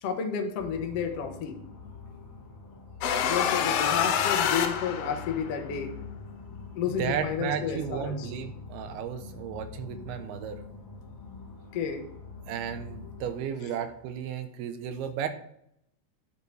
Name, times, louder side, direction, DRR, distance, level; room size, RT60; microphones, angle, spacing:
voice 1, 0.0-1.6 3.2-5.9 6.7-8.3 11.7-12.0, left 7 dB, 70° left, 4 dB, 1.4 m, -31 dB
sound 1, 0.6-13.4, left 4 dB, 50° left, 1.4 m, -44 dB
sound 2, 3.0-5.6, left 8 dB, 90° left, 2.9 m, -27 dB
voice 2, 7.0-10.6 12.5-15.3, right 8 dB, 80° right, 8 dB, 2.8 m, -34 dB
10.5 x 10.0 x 3.3 m, 0.73 s
omnidirectional pair, 4.6 m